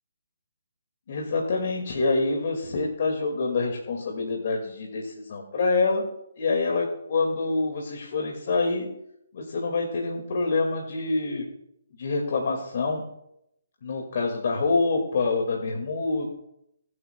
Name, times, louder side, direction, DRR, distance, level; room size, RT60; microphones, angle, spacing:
voice 1, 1.1-6.1 6.4-8.9 9.3-11.5 12.0-13.0 13.8-16.3, left 3 dB, 50° left, 0 dB, 1.9 m, -26 dB
22.5 x 8.2 x 2.2 m, 0.79 s
figure-of-eight pair, 145°, 0 cm